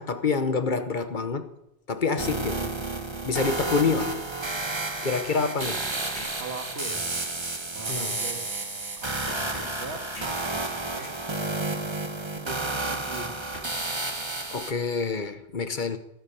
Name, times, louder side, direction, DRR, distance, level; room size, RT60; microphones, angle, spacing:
voice 1, 0.0-1.5 1.9-2.7 3.2-4.2 5.0-5.9 6.2-6.4 7.9-8.2 14.5-16.0, left 5 dB, 50° left, 1.1 m, -27 dB
sound 1, 2.2-14.7, right 2 dB, 25° right, 1.2 m, -31 dB
voice 2, 3.5-4.3 6.4-7.2 7.7-8.5 9.0-11.3 12.3-13.5 15.7-16.0, right 3 dB, 80° right, 2.2 m, -41 dB
sound 2, 6.1-6.3 6.7-6.8 7.0-7.2 9.0-9.8 10.1-10.3 10.6-11.2 13.0-13.8, left 2 dB, 85° left, 3.3 m, -42 dB
17.5 x 9.6 x 6.9 m
omnidirectional pair, 1.1 m